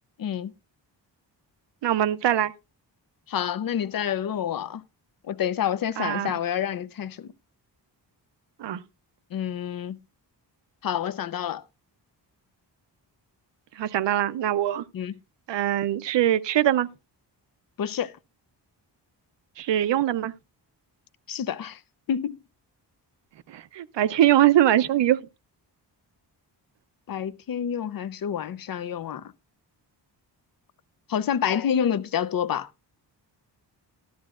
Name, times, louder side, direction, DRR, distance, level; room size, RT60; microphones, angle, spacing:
voice 1, 0.2-0.5 3.3-4.8 5.3-7.3 9.3-10.0 10.8-11.6 14.9-15.1 17.8-18.1 21.3-21.8 22.1-22.4 27.1-29.2 31.1-32.7, left 9 dB, 55° left, 0.5 m, -28 dB
voice 2, 1.8-2.5 6.0-6.3 8.6-8.8 13.8-14.8 15.5-16.9 19.6-20.3 23.5-25.2, right 12 dB, 80° right, 0.6 m, -22 dB
13.5 x 12.5 x 2.4 m
wide cardioid pair, 180°, 43 cm